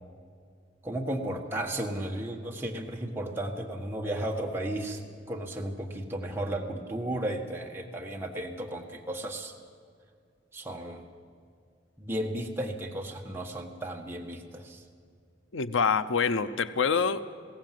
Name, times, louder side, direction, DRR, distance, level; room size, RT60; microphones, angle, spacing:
voice 1, 0.8-5.0 5.3-9.5 10.5-11.0 12.0-14.8, right 1 dB, 10° right, 0 dB, 1.6 m, -34 dB
voice 2, 15.5-17.2, left 5 dB, 85° left, 12 dB, 0.7 m, -26 dB
21.5 x 17.0 x 7.7 m, 2.2 s
head